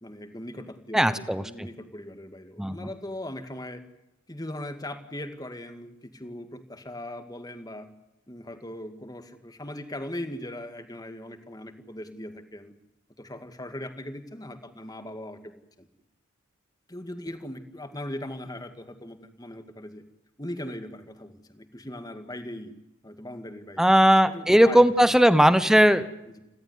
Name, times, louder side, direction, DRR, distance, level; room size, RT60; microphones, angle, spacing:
voice 1, 0.0-3.8 4.3-7.9 8.3-12.7 13.2-15.9 16.9-20.0 20.4-22.7 23.0-23.9 24.3-24.8 26.3-26.4, left 1 dB, 20° left, 8 dB, 2.0 m, -39 dB
voice 2, 0.9-1.7 2.6-2.9 23.8-26.1, equal, ahead, 13 dB, 1.0 m, -19 dB
29.5 x 13.0 x 9.6 m, 0.94 s
head